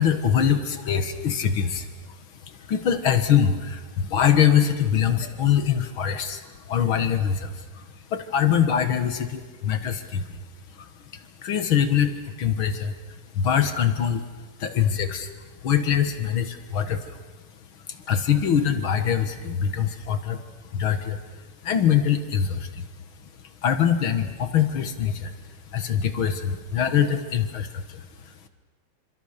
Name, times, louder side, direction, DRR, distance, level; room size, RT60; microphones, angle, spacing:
voice 1, 0.0-2.2 2.5-10.4 10.7-14.2 14.6-15.3 15.6-17.2 17.9-20.4 20.7-21.2 21.6-22.9 23.2-23.3 23.6-25.3 25.7-28.5, left 8 dB, 55° left, 9 dB, 1.5 m, -24 dB
28.5 x 26.0 x 6.7 m, 1.3 s
omnidirectional pair, 4.3 m